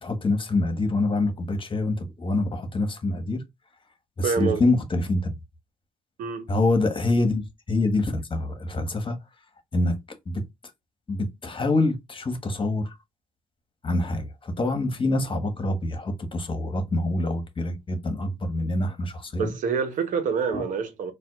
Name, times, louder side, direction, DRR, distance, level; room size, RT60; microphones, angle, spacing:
voice 1, 0.0-3.4 4.2-5.3 6.5-9.2 9.7-10.0 10.3-10.4 11.1-13.0 13.8-19.5 20.5-20.6, left 2 dB, 40° left, 1.3 m, -25 dB
voice 2, 4.2-4.6 6.2-6.5 19.4-21.1, right 5 dB, 70° right, 0.9 m, -26 dB
4.2 x 2.5 x 2.4 m
hypercardioid pair, 45°, 14 cm